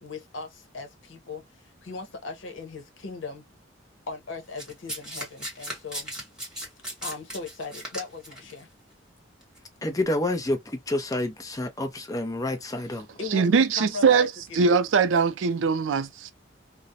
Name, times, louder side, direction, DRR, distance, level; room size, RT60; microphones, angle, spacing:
voice 1, 0.0-3.5 4.1-6.1 7.0-8.7 12.9-14.8, left 4 dB, 80° left, 0.8 m, -38 dB
Domestic sounds home sounds, 4.6-8.5 9.4-9.6, equal, 5° right, 1.2 m, -36 dB
voice 2, 9.8-13.1, left 1 dB, 20° left, 0.6 m, -28 dB
voice 3, 13.3-16.3, right 5 dB, 85° right, 0.4 m, -22 dB
2.3 x 2.1 x 2.7 m
head